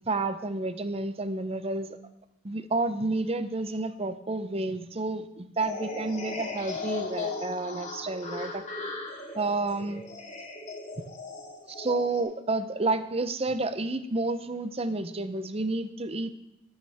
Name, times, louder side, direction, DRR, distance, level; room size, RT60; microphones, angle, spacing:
voice 1, 0.1-2.0 2.4-8.6 9.4-10.0 11.8-16.3, right 2 dB, 30° right, 11 dB, 0.7 m, -30 dB
sound 1, 5.6-12.2, left 3 dB, 35° left, 2.1 m, -37 dB
19.5 x 8.8 x 3.5 m, 0.87 s
head